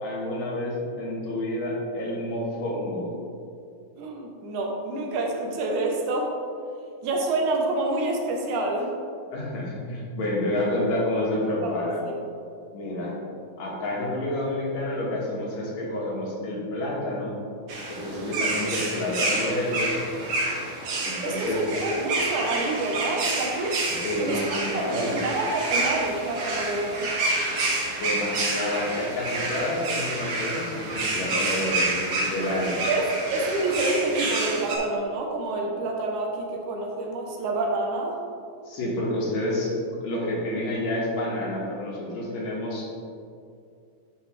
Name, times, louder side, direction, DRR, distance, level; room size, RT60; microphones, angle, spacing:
voice 1, 0.0-3.1 9.3-12.0 12.7-13.1 13.6-17.3 17.9-20.0 21.0-21.6 24.0-25.2 27.9-32.7 38.7-39.7 40.0-43.0, left 1 dB, 70° left, -5 dB, 2.7 m, -29 dB
voice 2, 4.0-6.4 7.0-8.9 11.6-12.1 18.1-18.5 21.2-23.8 24.2-27.1 32.4-32.5 32.8-38.2, right 2 dB, 80° right, 1 dB, 2.3 m, -28 dB
sound 1, 17.7-34.8, right 2 dB, 60° right, 2.0 m, -28 dB
9.7 x 5.4 x 3.2 m, 2.4 s
omnidirectional pair, 3.5 m